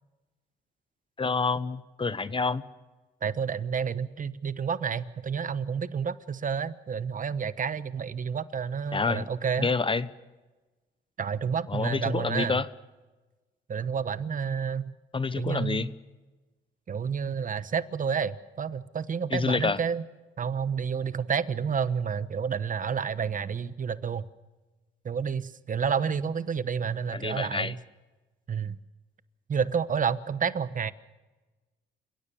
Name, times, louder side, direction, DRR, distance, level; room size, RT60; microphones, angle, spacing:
voice 1, 1.2-2.6 8.9-9.2 9.6-10.1 11.7-12.7 15.1-15.9 19.3-19.8 27.1-27.7, left 4 dB, 25° left, 15 dB, 0.9 m, -28 dB
voice 2, 3.2-9.7 11.2-12.6 13.7-14.9 15.4-15.9 16.9-20.0 20.4-24.2 25.0-27.8 28.5-28.8 29.5-30.9, right 6 dB, 40° right, 14 dB, 1.1 m, -30 dB
29.0 x 17.0 x 7.1 m, 1.2 s
cardioid pair, 90°, 20 cm